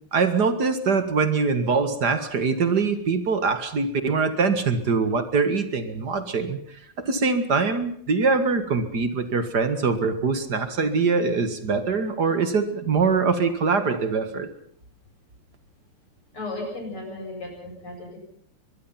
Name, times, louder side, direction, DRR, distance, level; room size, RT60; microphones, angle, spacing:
voice 1, 0.1-6.6 7.0-14.5, right 4 dB, 50° right, 10 dB, 2.4 m, -23 dB
voice 2, 16.3-18.2, left 2 dB, 80° left, 1 dB, 9.0 m, -35 dB
23.0 x 22.0 x 5.9 m, 0.63 s
omnidirectional pair, 2.4 m